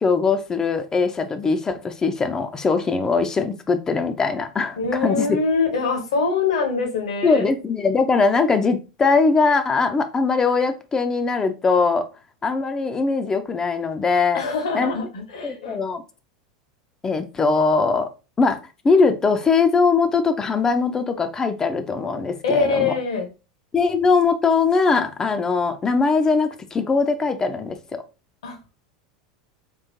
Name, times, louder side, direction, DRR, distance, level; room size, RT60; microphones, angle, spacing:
voice 1, 0.0-5.4 7.2-12.1 12.4-14.4 14.7-14.9 15.4-16.0 17.0-18.1 18.4-18.6 18.8-22.9 23.7-28.0, left 4 dB, 20° left, 0.4 m, -21 dB
voice 2, 4.8-7.5 14.3-15.8 22.4-23.3 28.4-28.6, left 4 dB, 65° left, 0.9 m, -23 dB
3.6 x 2.5 x 2.8 m
figure-of-eight pair, 80°, 3 cm